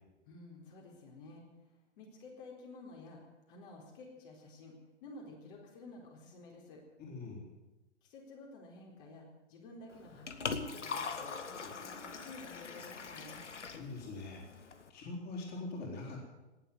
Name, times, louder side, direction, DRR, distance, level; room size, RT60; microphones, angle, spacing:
voice 1, 0.3-1.4 2.0-3.2 3.5-4.7 5.0-6.8 8.0-13.4, left 2 dB, 45° left, -1 dB, 4.2 m, -51 dB
voice 2, 7.0-7.5 11.6-11.7 13.7-16.3, left 2 dB, 30° left, -2 dB, 4.2 m, -43 dB
Liquid, 9.9-14.9, left 5 dB, 80° left, 1.6 m, -42 dB
19.0 x 8.1 x 9.4 m, 1.1 s
figure-of-eight pair, 120°, 35 cm